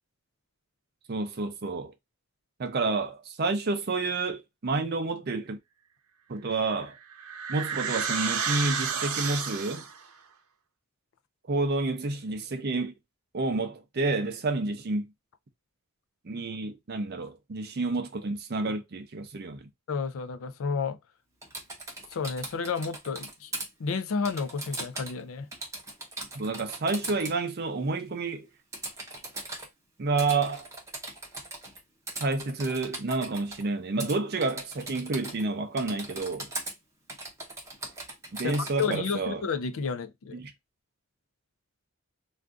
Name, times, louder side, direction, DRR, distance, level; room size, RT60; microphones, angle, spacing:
voice 1, 1.1-1.9 2.6-5.6 6.3-6.9 7.5-9.8 11.5-12.9 13.3-15.1 16.2-19.6 26.3-28.5 30.0-30.7 32.2-36.5 38.3-39.4 40.3-40.5, right 3 dB, 45° right, 0.5 m, -29 dB
sound 1, 6.6-10.0, right 6 dB, 85° right, 0.6 m, -31 dB
voice 2, 19.9-21.0 22.1-23.5 23.8-25.5 38.4-40.4, left 5 dB, 65° left, 0.4 m, -31 dB
Typing, 21.4-23.7 24.3-25.2 25.5-27.4 28.7-29.7 30.2-31.8 32.1-33.6 34.0-34.2 34.4-35.5 35.8-36.7 37.1-39.0, right 2 dB, 15° right, 0.7 m, -39 dB
2.5 x 2.4 x 3.5 m
head